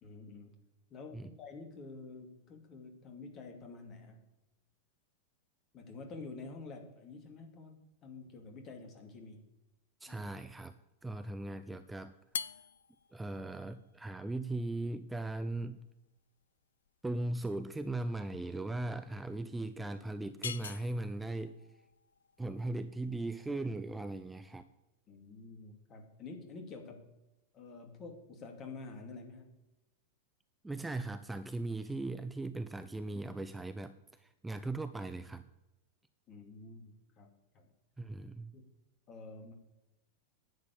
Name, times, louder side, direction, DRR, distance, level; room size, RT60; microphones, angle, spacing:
voice 1, 0.0-0.6 0.9-4.2 5.7-9.4 10.1-10.2 25.1-27.1 27.5-29.5 36.3-37.7 38.5-38.6 39.1-39.5, left 3 dB, 30° left, 5 dB, 2.5 m, -49 dB
voice 2, 10.0-10.7 11.0-12.2 13.1-15.8 17.0-21.6 22.4-24.7 30.6-35.4 38.0-38.5, right 2 dB, 10° right, 11 dB, 0.5 m, -38 dB
sound 1, 12.2-24.6, left 7 dB, 65° left, 0.5 m, -48 dB
11.0 x 7.5 x 8.7 m, 0.99 s
figure-of-eight pair, 90°, 0 cm